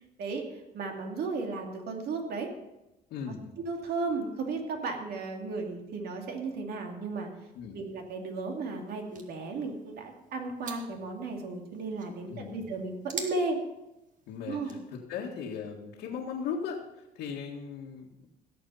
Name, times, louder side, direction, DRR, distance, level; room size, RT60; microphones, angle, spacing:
voice 1, 0.2-2.5 3.3-7.3 7.7-13.6 14.5-14.7, right 3 dB, 70° right, 2 dB, 2.6 m, -35 dB
voice 2, 3.1-3.5 7.6-7.9 12.3-12.6 14.3-18.3, left 6 dB, 85° left, -3 dB, 1.8 m, -38 dB
sound 1, 7.1-14.9, right 5 dB, 50° right, 1.8 m, -48 dB
17.0 x 7.1 x 5.6 m, 0.95 s
cardioid pair, 110°, 17 cm